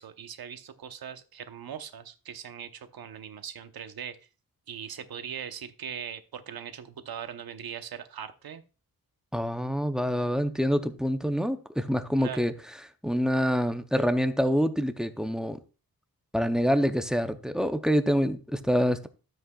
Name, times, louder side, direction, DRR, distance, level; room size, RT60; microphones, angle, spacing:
voice 1, 0.0-4.2 4.7-8.6 12.2-12.4, right 8 dB, 90° right, 0.9 m, -40 dB
voice 2, 9.3-12.5 13.0-15.6 16.3-19.1, equal, ahead, 0.6 m, -26 dB
12.5 x 7.7 x 2.3 m
wide cardioid pair, 160°, 36 cm